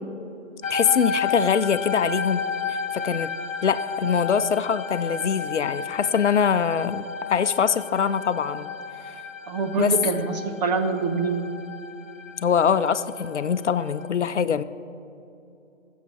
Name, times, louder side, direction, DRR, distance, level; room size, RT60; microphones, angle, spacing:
sound 1, 0.6-14.1, left 5 dB, 80° left, 1.1 m, -32 dB
voice 1, 0.7-2.4 2.7-3.3 3.6-8.7 9.0-9.1 9.8-9.9 12.4-14.6, left 7 dB, 65° left, 13 dB, 0.7 m, -23 dB
voice 2, 9.5-11.5, right 4 dB, 35° right, 5 dB, 1.1 m, -25 dB
16.0 x 7.5 x 7.3 m, 2.8 s
figure-of-eight pair, 145°, 38 cm